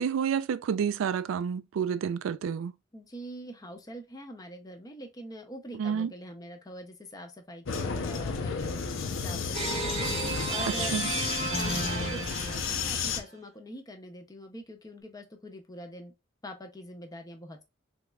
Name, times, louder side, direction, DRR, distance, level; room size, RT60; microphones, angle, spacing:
voice 1, 0.0-2.7 5.8-6.1 10.8-11.1, right 7 dB, 80° right, 0.3 m, -29 dB
voice 2, 2.9-8.8 9.1-10.9 11.3-16.1 16.4-17.6, equal, 20° left, 0.6 m, -44 dB
Vehicle, 7.6-13.2, left 5 dB, 90° left, 0.6 m, -32 dB
sound 1, 9.5-13.2, right 2 dB, 35° right, 0.8 m, -33 dB
3.5 x 3.0 x 2.2 m
head